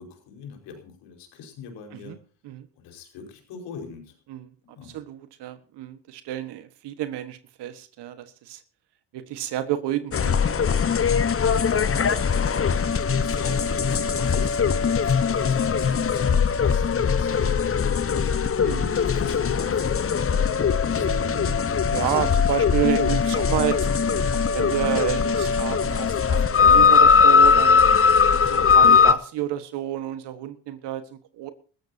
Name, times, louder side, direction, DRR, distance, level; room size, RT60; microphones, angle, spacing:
voice 1, 0.0-2.2 2.8-4.2 4.7-5.0 13.0-18.5 19.0-21.5, left 6 dB, 80° left, 3 dB, 5.1 m, -41 dB
voice 2, 4.9-8.6 9.1-10.8 18.6-18.9 20.9-21.6 21.9-23.9 24.5-27.9 28.3-31.5, right 12 dB, 75° right, 11 dB, 1.5 m, -30 dB
sound 1, 10.1-29.1, left 6 dB, 30° left, 1.1 m, -20 dB
20.0 x 15.0 x 2.8 m, 0.40 s
supercardioid pair, 70°, 41 cm